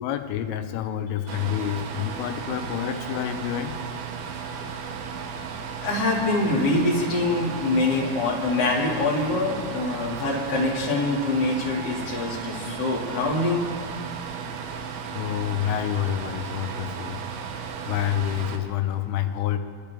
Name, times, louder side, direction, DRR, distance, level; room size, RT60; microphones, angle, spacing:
voice 1, 0.0-3.8 15.1-17.2 17.9-19.6, left 11 dB, 85° left, 8 dB, 3.3 m, -28 dB
sound 1, 1.3-18.6, right 6 dB, 90° right, 2.1 m, -35 dB
voice 2, 5.8-13.6, left 2 dB, 65° left, -4 dB, 1.0 m, -24 dB
22.0 x 12.0 x 3.5 m, 2.2 s
omnidirectional pair, 5.7 m